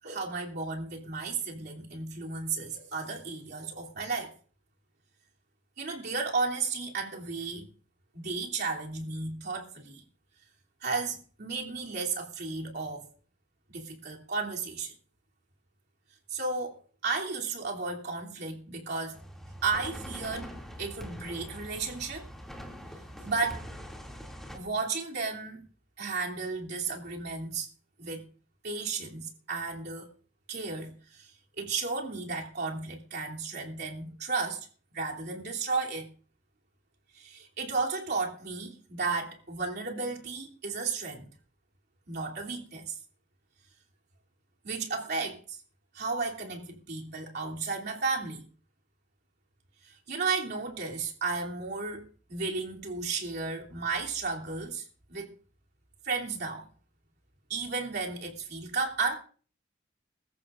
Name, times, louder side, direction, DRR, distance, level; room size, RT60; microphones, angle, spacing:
voice 1, 0.0-4.3 5.8-7.7 8.1-10.0 10.8-13.1 13.7-14.9 16.3-19.2 19.6-22.2 23.2-23.6 24.5-25.6 26.0-27.7 28.0-28.2 28.6-30.1 30.5-31.3 31.6-34.7 34.9-36.1 37.1-41.3 42.1-43.0 44.6-45.6 45.9-48.5 49.8-55.3 56.0-56.7 57.5-59.1, right 4 dB, 55° right, 3.0 m, -33 dB
sound 1, 19.1-24.6, equal, ahead, 2.5 m, -43 dB
23.0 x 14.0 x 2.5 m
head